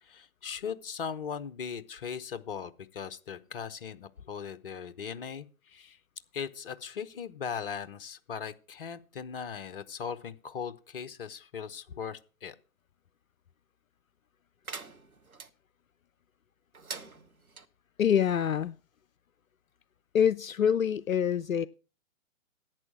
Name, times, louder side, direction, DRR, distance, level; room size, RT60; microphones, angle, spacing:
voice 1, 0.0-6.0 6.3-12.6, left 7 dB, 40° left, 0.9 m, -39 dB
sound 1, 14.6-15.5 16.7-17.7, right 4 dB, 85° right, 1.1 m, -43 dB
voice 2, 18.0-18.7 20.1-21.7, left 8 dB, 70° left, 0.5 m, -25 dB
11.0 x 8.3 x 6.0 m
figure-of-eight pair, 130°, 42 cm